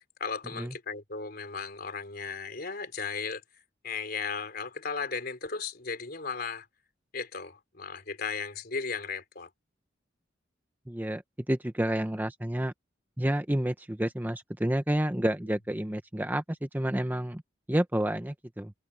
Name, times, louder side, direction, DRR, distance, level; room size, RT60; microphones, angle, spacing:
voice 1, 0.0-6.7 7.1-9.5, left 5 dB, 50° left, 3.8 m, -36 dB
voice 2, 10.9-11.2 11.5-12.7 13.2-17.4 17.7-18.7, right 1 dB, 10° right, 0.7 m, -29 dB
head